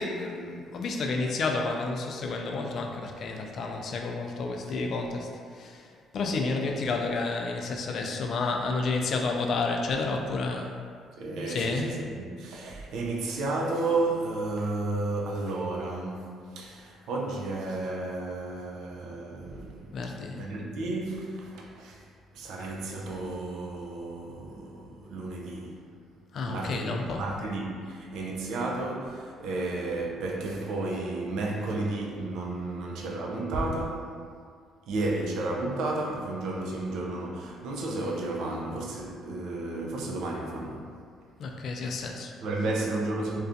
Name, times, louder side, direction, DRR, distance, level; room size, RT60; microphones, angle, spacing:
voice 1, 0.0-10.8 11.5-11.9 19.9-20.4 26.3-27.2 41.4-42.3, left 3 dB, 60° left, 0.3 m, -30 dB
voice 2, 11.2-20.0 20.3-22.0 22.3-25.8 26.4-34.2 34.9-41.0 42.4-43.4, right 2 dB, 75° right, 0.4 m, -32 dB
2.4 x 2.2 x 2.6 m
supercardioid pair, 75°, 0 cm